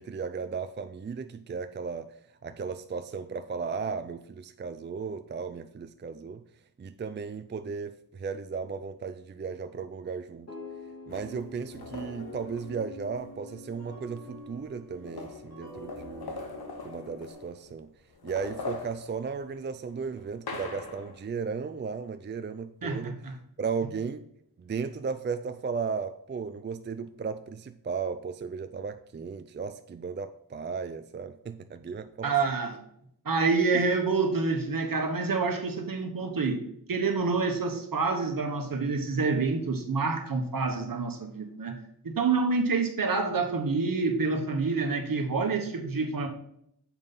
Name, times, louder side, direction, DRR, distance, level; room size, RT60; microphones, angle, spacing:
voice 1, 0.0-2.1 2.4-6.4 6.8-10.5 11.1-16.4 16.8-17.9 18.2-23.2 23.6-24.3 24.6-32.3, right 5 dB, 30° right, 10 dB, 0.4 m, -35 dB
sound 1, 10.5-17.3, left 2 dB, 45° left, 2.6 m, -46 dB
sound 2, 11.1-13.3 14.3-14.4 14.6-17.7 18.1-21.2, left 3 dB, 75° left, 1.1 m, -42 dB
voice 2, 22.8-23.3 32.2-32.8 33.2-36.6 36.9-41.7 42.0-46.3, right 4 dB, 65° right, 4 dB, 1.2 m, -27 dB
7.2 x 5.4 x 4.1 m, 0.71 s
wide cardioid pair, 65°, 37 cm